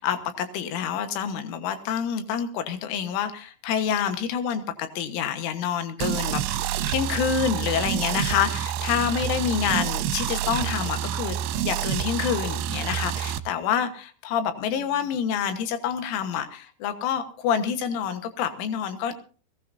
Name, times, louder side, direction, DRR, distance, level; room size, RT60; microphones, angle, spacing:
voice 1, 0.0-19.1, left 8 dB, 85° left, 8 dB, 3.9 m, -27 dB
sound 1, 6.0-13.4, right 11 dB, 80° right, 2.4 m, -28 dB
21.5 x 17.0 x 2.7 m, 0.39 s
omnidirectional pair, 5.5 m